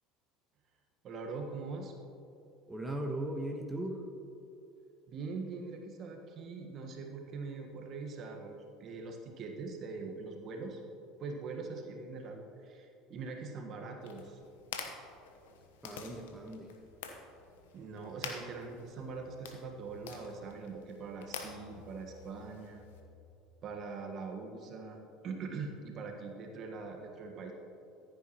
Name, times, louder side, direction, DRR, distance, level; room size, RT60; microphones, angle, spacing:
voice 1, 1.0-1.9 5.1-10.8 11.2-14.4 17.7-22.8 23.6-27.5, right 4 dB, 50° right, 3 dB, 1.5 m, -42 dB
voice 2, 2.7-4.0 15.8-16.7, right 1 dB, 10° right, 2 dB, 1.2 m, -38 dB
sound 1, 14.0-23.0, left 6 dB, 75° left, 1.1 m, -48 dB
14.5 x 9.2 x 3.1 m, 2.7 s
hypercardioid pair, 75°, 0 cm